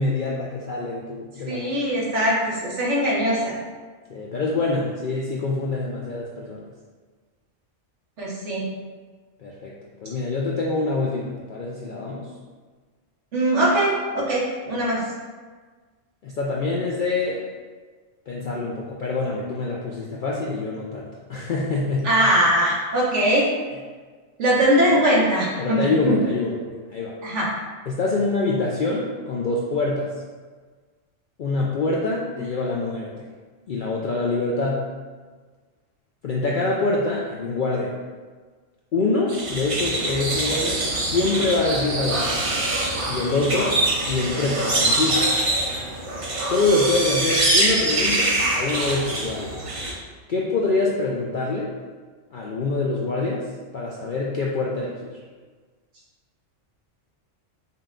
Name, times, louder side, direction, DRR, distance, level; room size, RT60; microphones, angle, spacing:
voice 1, 0.0-1.7 4.1-6.7 9.4-9.7 10.0-12.3 14.8-14.9 16.2-17.4 18.3-22.1 24.9-25.0 25.6-27.2 27.9-30.1 31.4-33.3 33.7-34.8 36.2-37.9 38.9-42.4 43.1-45.3 46.4-49.7 50.3-51.7 52.3-53.5 53.7-55.2, left 3 dB, 65° left, -3 dB, 0.5 m, -25 dB
voice 2, 1.5-3.5 8.2-8.6 13.3-15.0 22.0-23.4 24.4-25.8 26.1-26.2 27.2-27.5, right 1 dB, 65° right, -5 dB, 1.4 m, -21 dB
sound 1, 39.3-49.9, right 2 dB, 40° right, 0.5 m, -24 dB
5.6 x 2.2 x 3.7 m, 1.5 s
omnidirectional pair, 1.3 m